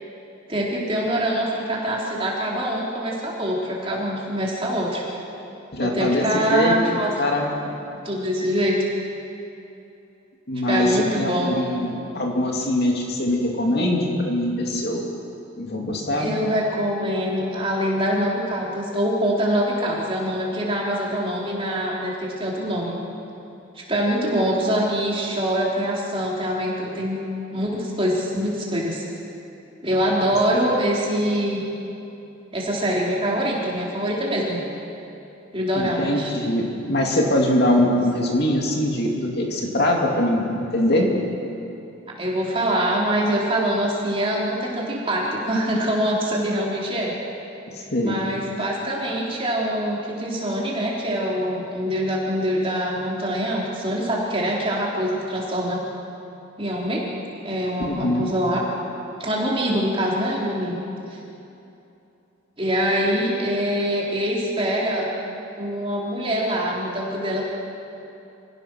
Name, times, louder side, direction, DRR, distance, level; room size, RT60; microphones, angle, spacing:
voice 1, 0.5-5.0 5.8-7.1 8.0-8.8 10.7-11.5 16.1-23.0 23.8-27.2 27.5-29.0 29.8-31.6 32.5-34.6 35.5-36.3 42.2-47.1 48.0-55.8 56.6-57.0 57.4-58.7 59.2-60.8 61.1-61.2 62.6-65.1 65.6-67.5, equal, 25° right, -4 dB, 3.7 m, -24 dB
voice 2, 5.7-6.8 7.2-7.7 10.5-15.0 15.5-16.3 35.7-41.1 47.7-48.2 57.8-58.3, left 1 dB, 50° left, 0 dB, 2.7 m, -22 dB
26.5 x 17.0 x 6.3 m, 2.8 s
head